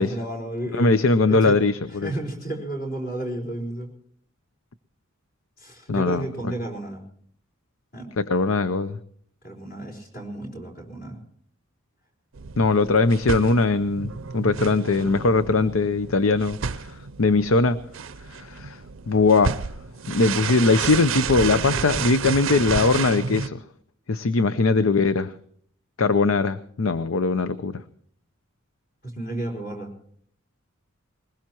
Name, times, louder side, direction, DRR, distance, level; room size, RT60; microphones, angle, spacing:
voice 1, 0.0-1.6 1.9-3.9 5.6-7.0 7.9-8.1 9.4-11.2 12.8-12.9 29.0-29.9, right 1 dB, 45° left, 1 dB, 4.5 m, -32 dB
voice 2, 0.7-2.1 5.9-6.5 8.2-9.0 12.6-17.8 18.3-18.8 19.1-19.7 20.1-23.6 24.1-25.3 26.0-27.8, left 3 dB, 75° left, 13 dB, 0.6 m, -21 dB
sound 1, 12.3-23.5, right 6 dB, 65° right, 0.6 m, -31 dB
21.5 x 20.5 x 3.0 m, 0.62 s
head